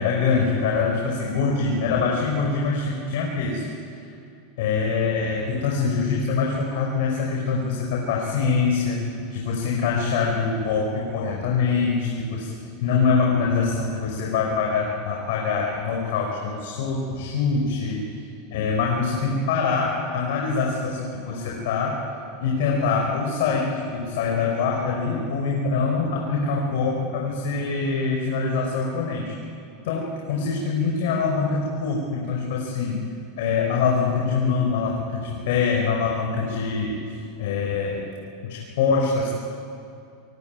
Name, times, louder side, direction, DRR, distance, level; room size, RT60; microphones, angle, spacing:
voice 1, 0.0-3.6 4.6-12.5 12.8-18.0 18.5-22.0 22.4-29.3 29.8-33.0 33.4-38.0 38.5-39.3, left 5 dB, 70° left, -1 dB, 5.6 m, -24 dB
25.5 x 22.5 x 9.5 m, 2.4 s
hypercardioid pair, 115°, 0 cm